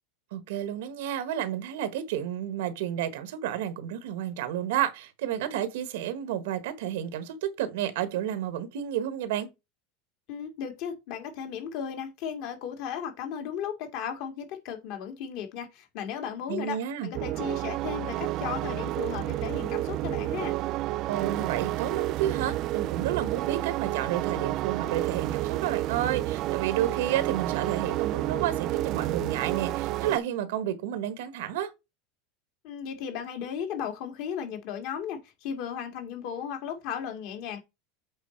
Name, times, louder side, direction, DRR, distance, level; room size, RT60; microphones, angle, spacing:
voice 1, 0.3-9.5 16.5-17.1 21.1-31.7, right 11 dB, 80° right, 1.3 m, -31 dB
voice 2, 10.3-20.5 32.6-37.6, left 8 dB, 55° left, 2.1 m, -35 dB
sound 1, 17.1-30.2, right 16 dB, 40° right, 0.3 m, -30 dB
8.1 x 4.1 x 4.4 m
supercardioid pair, 160°, 0 cm